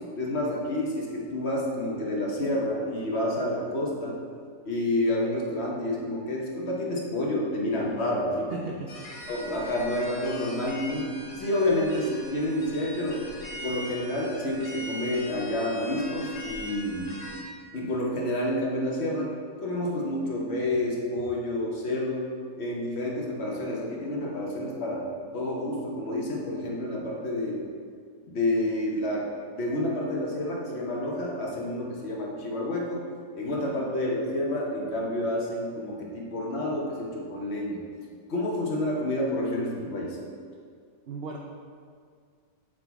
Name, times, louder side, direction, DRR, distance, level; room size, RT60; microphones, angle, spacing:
voice 1, 0.0-4.2 4.6-8.6 9.3-11.1 11.4-13.2 13.6-17.1 17.7-19.3 19.6-22.3 22.6-25.1 25.3-27.6 28.3-33.1 33.3-37.8 38.3-40.2, left 1 dB, 50° left, -2 dB, 1.1 m, -29 dB
voice 2, 8.5-8.9 9.2-9.3 33.5-33.8 41.1-41.4, right 4 dB, 80° right, 0 dB, 0.5 m, -38 dB
sound 1, 8.9-17.4, left 1 dB, 80° left, 1.6 m, -41 dB
7.7 x 3.9 x 4.6 m, 2.1 s
omnidirectional pair, 1.7 m